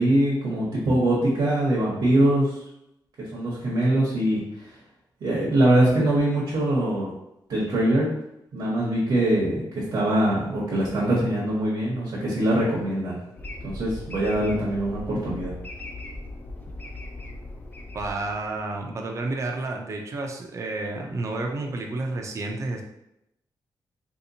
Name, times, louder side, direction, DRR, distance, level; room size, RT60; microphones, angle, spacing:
voice 1, 0.0-2.5 3.3-4.7 5.2-7.1 7.5-8.1 8.5-13.2 13.6-15.5, right 1 dB, 65° right, -6 dB, 0.9 m, -23 dB
sound 1, 13.4-18.8, left 2 dB, 25° left, 0.4 m, -38 dB
voice 2, 17.9-22.8, right 2 dB, 40° right, 2 dB, 0.5 m, -30 dB
3.3 x 2.8 x 2.7 m, 0.82 s
wide cardioid pair, 165°, 8 cm